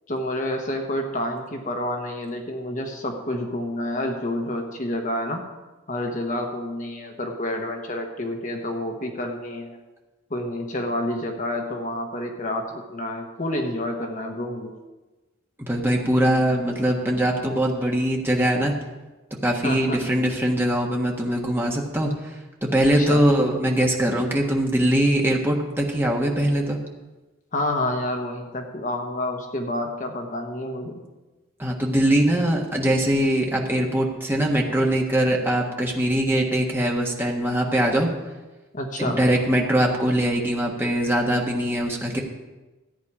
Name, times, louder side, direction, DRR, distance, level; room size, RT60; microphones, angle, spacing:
voice 1, 0.1-5.4 5.9-9.8 10.3-14.7 19.6-20.0 22.8-23.2 27.5-31.0 38.7-39.2, left 1 dB, 40° left, 3 dB, 1.2 m, -29 dB
voice 2, 15.6-18.7 19.4-26.8 31.6-38.1 39.0-42.2, right 1 dB, 10° right, -1 dB, 1.6 m, -22 dB
14.0 x 9.3 x 4.9 m, 1.2 s
head